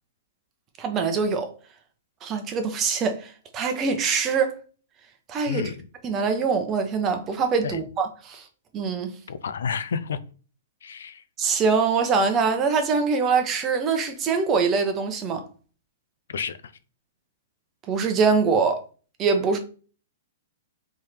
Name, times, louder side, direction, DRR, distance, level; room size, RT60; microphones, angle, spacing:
voice 1, 0.8-1.5 2.2-4.5 5.3-5.7 6.0-8.4 8.7-9.1 11.4-15.4 17.9-18.8 19.2-19.6, right 5 dB, 25° right, 0.9 m, -23 dB
voice 2, 5.5-5.9 7.6-7.8 9.3-10.2 10.8-11.2 16.3-16.7, left 6 dB, 80° left, 0.5 m, -30 dB
3.6 x 3.2 x 4.4 m
hypercardioid pair, 135°, 0 cm